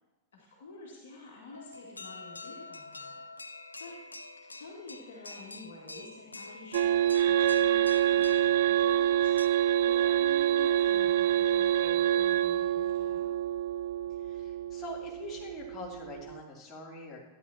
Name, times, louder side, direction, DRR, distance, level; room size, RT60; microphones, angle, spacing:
voice 1, 0.3-3.5 3.8-4.0 4.5-13.3, left 2 dB, 60° left, -3 dB, 2.3 m, -49 dB
sound 1, 1.5-9.5, left 2 dB, 80° left, 0.5 m, -46 dB
sound 2, 6.7-16.4, right 11 dB, 55° right, 0.4 m, -26 dB
voice 2, 14.1-17.2, left 2 dB, 25° left, -4 dB, 3.2 m, -44 dB
13.5 x 10.5 x 3.0 m, 1.1 s
figure-of-eight pair, 90°, 0 cm